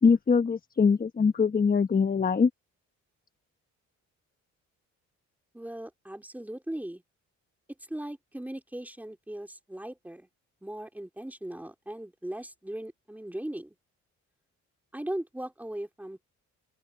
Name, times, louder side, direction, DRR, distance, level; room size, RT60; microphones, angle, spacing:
voice 1, 0.0-2.5, left 5 dB, 30° left, 1.3 m, -23 dB
voice 2, 5.5-7.0 7.9-10.3 10.6-13.7 14.9-16.2, right 1 dB, 5° right, 3.3 m, -38 dB
open air
cardioid pair, 90°, 30 cm